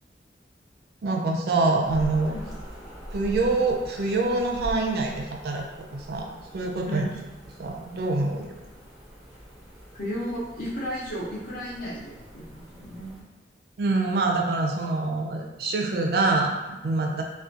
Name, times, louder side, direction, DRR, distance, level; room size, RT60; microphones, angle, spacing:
voice 1, 1.0-2.3 3.1-5.6 5.9-6.3 6.5-7.1 7.6-8.5 13.8-17.2, right 3 dB, 55° right, 1 dB, 0.3 m, -25 dB
sound 1, 1.8-13.2, equal, 5° right, 0.5 m, -42 dB
voice 2, 9.9-13.2, equal, 55° left, -6 dB, 0.7 m, -34 dB
2.4 x 2.2 x 2.5 m, 1.1 s
head